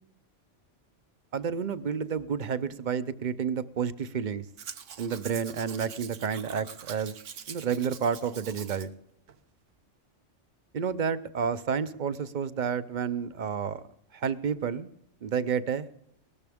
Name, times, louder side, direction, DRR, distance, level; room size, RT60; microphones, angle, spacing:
voice 1, 1.3-4.4 5.0-7.1 7.5-8.9 10.7-13.8 14.1-14.9 15.2-15.9, right 7 dB, 50° right, 13 dB, 0.7 m, -30 dB
Domestic sounds home sounds, 4.6-8.9 9.3-9.4, right 8 dB, 85° right, 1.2 m, -44 dB
18.5 x 13.5 x 3.6 m, 0.77 s
omnidirectional pair, 1.2 m